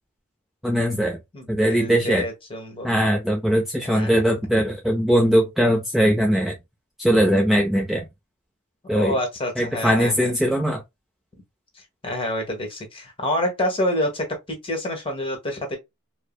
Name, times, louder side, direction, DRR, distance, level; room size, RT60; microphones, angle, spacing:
voice 1, 0.6-1.2 1.5-2.3 2.8-6.6 7.0-8.1 8.9-9.1 9.6-10.8, equal, ahead, 0.5 m, -20 dB
voice 2, 1.3-2.9 3.8-4.2 8.9-10.3 12.0-15.8, left 1 dB, 25° left, 1.3 m, -27 dB
4.6 x 2.1 x 2.3 m
head